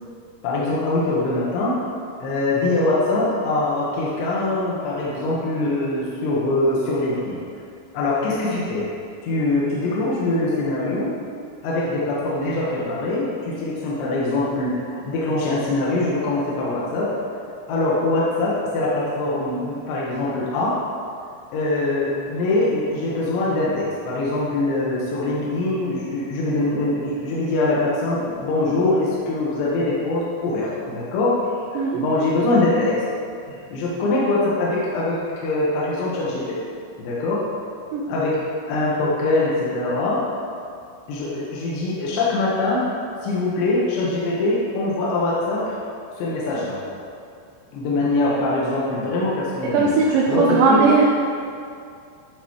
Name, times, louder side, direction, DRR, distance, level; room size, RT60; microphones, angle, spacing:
voice 1, 0.4-1.8 2.2-7.4 7.9-8.8 9.2-11.1 11.6-17.1 17.7-20.8 21.5-31.3 31.7-33.0 33.5-35.2 35.4-36.7 37.0-37.4 38.1-38.4 38.7-40.3 41.1-42.8 43.2-45.8 46.2-46.8 47.7-50.8, left 2 dB, 70° left, -6 dB, 3.1 m, -23 dB
voice 2, 49.7-51.0, right 4 dB, 80° right, -3 dB, 2.5 m, -18 dB
11.0 x 4.0 x 4.7 m, 2.4 s
omnidirectional pair, 5.7 m